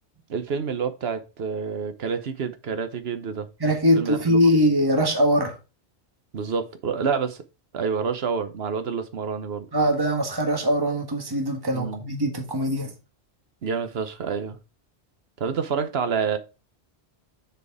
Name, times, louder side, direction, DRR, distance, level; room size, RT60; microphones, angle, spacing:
voice 1, 0.3-3.5 4.0-4.4 6.3-7.4 7.7-9.7 11.7-12.0 13.6-14.6 15.4-16.4, right 6 dB, 65° right, 1.1 m, -28 dB
voice 2, 3.6-5.5 9.7-12.9, equal, 20° right, 1.5 m, -22 dB
6.8 x 4.7 x 4.8 m
omnidirectional pair, 1.1 m